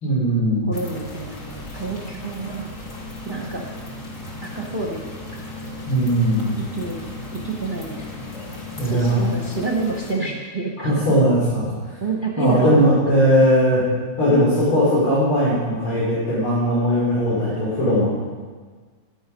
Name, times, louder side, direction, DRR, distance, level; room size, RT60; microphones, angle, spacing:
voice 1, 0.0-0.7 5.9-6.6 8.8-9.2 10.8-11.7 12.4-13.8 14.2-18.1, equal, 85° left, -8 dB, 4.5 m, -19 dB
sound 1, 0.7-10.1, left 2 dB, 35° left, 2.5 m, -36 dB
voice 2, 0.7-2.7 3.3-3.6 4.4-5.1 6.6-8.1 8.7-11.1 12.0-13.5, right 3 dB, 30° right, 0 dB, 1.3 m, -28 dB
15.5 x 11.0 x 5.4 m, 1.5 s
omnidirectional pair, 2.3 m